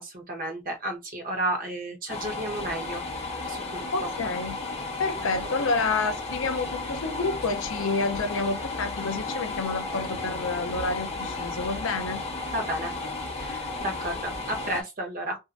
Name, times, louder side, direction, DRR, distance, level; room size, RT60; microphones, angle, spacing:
voice 1, 0.0-4.1 12.5-12.9 13.4-15.4, right 1 dB, 45° right, 0.9 m, -32 dB
sound 1, 2.1-14.8, left 3 dB, 30° left, 0.7 m, -34 dB
voice 2, 3.9-4.6 5.0-12.2, left 3 dB, 70° left, 0.5 m, -29 dB
2.6 x 2.4 x 2.5 m
head